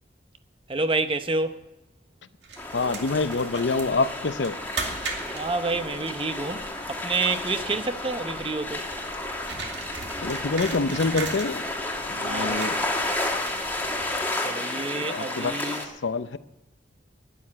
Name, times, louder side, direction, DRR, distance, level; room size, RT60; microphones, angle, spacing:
voice 1, 0.7-1.6 5.3-6.6 6.9-8.8 12.2-12.7 14.4-15.9, right 3 dB, 30° right, 0.8 m, -28 dB
sound 1, 2.4-14.5, right 4 dB, 65° right, 2.3 m, -39 dB
sound 2, 2.6-15.8, left 2 dB, 10° left, 1.7 m, -32 dB
voice 2, 2.7-4.6 10.2-11.7 12.1-12.8 15.0-15.6 16.0-16.4, left 3 dB, 70° left, 0.7 m, -26 dB
12.0 x 9.8 x 8.7 m
head